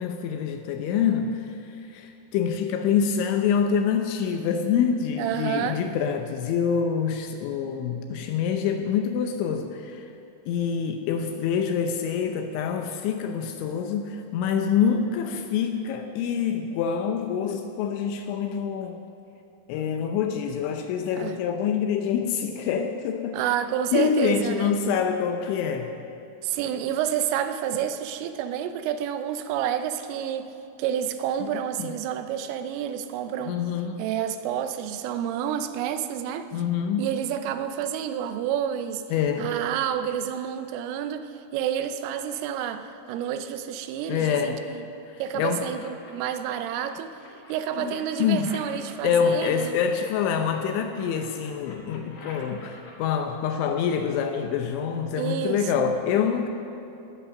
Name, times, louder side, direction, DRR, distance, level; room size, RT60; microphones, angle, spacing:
voice 1, 0.0-10.1 10.5-19.0 19.7-23.4 23.9-25.9 31.4-31.5 31.8-32.0 33.4-34.0 36.5-37.1 39.1-39.5 44.1-44.6 45.1-45.7 47.8-56.5, left 7 dB, 80° left, 5 dB, 2.9 m, -26 dB
voice 2, 5.2-5.8 21.2-21.4 23.3-24.8 26.4-30.5 30.8-33.6 34.0-36.5 37.0-39.0 39.4-44.8 45.2-47.1 47.5-49.8 55.1-55.9, right 9 dB, 85° right, 9 dB, 3.2 m, -29 dB
sound 1, 45.5-46.8 47.2-50.6 50.9-52.9, left 3 dB, 55° left, 3.0 m, -47 dB
19.0 x 8.3 x 6.3 m, 2.7 s
omnidirectional pair, 5.8 m